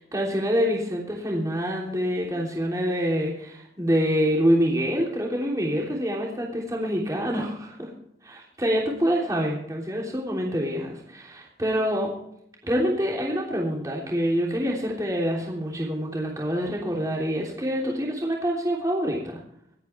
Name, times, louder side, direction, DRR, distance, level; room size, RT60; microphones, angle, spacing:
voice 1, 0.1-7.9 8.2-12.1 12.6-19.2, equal, 20° right, -2 dB, 3.2 m, -26 dB
25.5 x 9.5 x 3.4 m, 0.74 s
head